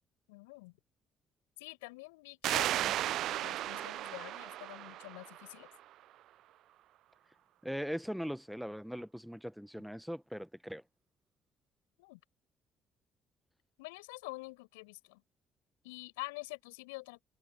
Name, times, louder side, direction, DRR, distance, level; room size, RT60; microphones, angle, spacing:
voice 1, 0.3-0.8 1.6-5.7 12.0-12.2 13.8-15.2 15.8-17.2, left 26 dB, 75° left, 7.6 m, -47 dB
sound 1, 2.4-5.8, right 13 dB, 65° right, 0.4 m, -35 dB
voice 2, 7.6-10.8, equal, ahead, 1.2 m, -40 dB
figure-of-eight pair, 45°, 0 cm